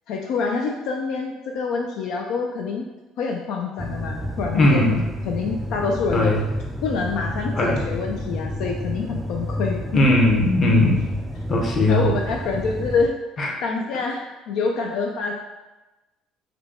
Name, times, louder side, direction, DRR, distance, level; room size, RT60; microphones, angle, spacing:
voice 1, 0.1-2.8 3.2-5.0 5.2-6.3 6.8-9.8 11.9-13.1 13.6-15.3, left 4 dB, 70° left, 1 dB, 0.4 m, -26 dB
sound 1, 3.8-13.1, equal, 10° right, 0.3 m, -30 dB
voice 2, 4.5-5.0 6.1-6.4 7.5-7.9 9.9-11.0 11.5-12.1 13.4-13.5, left 1 dB, 35° left, -1 dB, 0.9 m, -18 dB
5.0 x 2.2 x 4.3 m, 1.1 s
cardioid pair, 120°, 0 cm